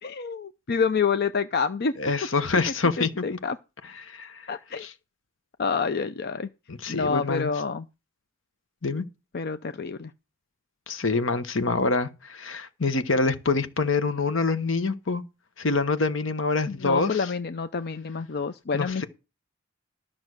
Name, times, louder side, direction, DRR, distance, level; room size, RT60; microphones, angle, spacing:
voice 1, 0.0-2.0 3.0-3.6 4.5-4.9 5.6-6.5 6.9-7.9 9.3-10.1 16.7-19.0, left 5 dB, 55° left, 0.6 m, -28 dB
voice 2, 2.0-3.4 4.0-4.4 4.8-4.9 6.7-7.5 8.8-9.0 10.9-15.2 15.6-17.2 18.7-19.0, left 3 dB, 75° left, 1.2 m, -26 dB
13.0 x 6.1 x 6.3 m
head